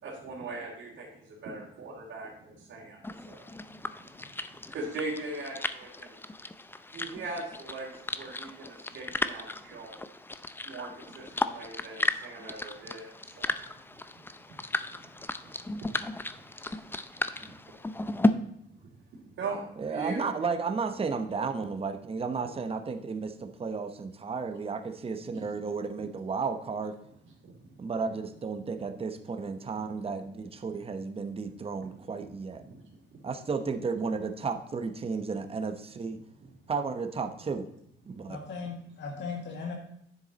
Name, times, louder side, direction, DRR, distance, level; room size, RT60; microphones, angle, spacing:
voice 1, 0.0-3.5 4.2-4.3 4.6-6.2 6.9-10.0 10.6-13.6 14.5-14.6 15.4-15.5 16.3-16.8 19.3-20.2 27.4-27.6 32.7-32.8 33.1-33.2 36.4-36.5, right 3 dB, 70° right, -6 dB, 2.9 m, -40 dB
sound 1, 3.0-18.3, left 2 dB, 10° left, 0.5 m, -34 dB
voice 2, 19.8-26.9 27.8-32.6 33.2-36.2 36.7-37.7 38.1-38.4, right 5 dB, 30° right, 6 dB, 0.9 m, -33 dB
voice 3, 38.3-39.7, left 5 dB, 65° left, 1 dB, 1.6 m, -37 dB
9.8 x 7.1 x 4.0 m, 0.73 s
cardioid pair, 90°, 20 cm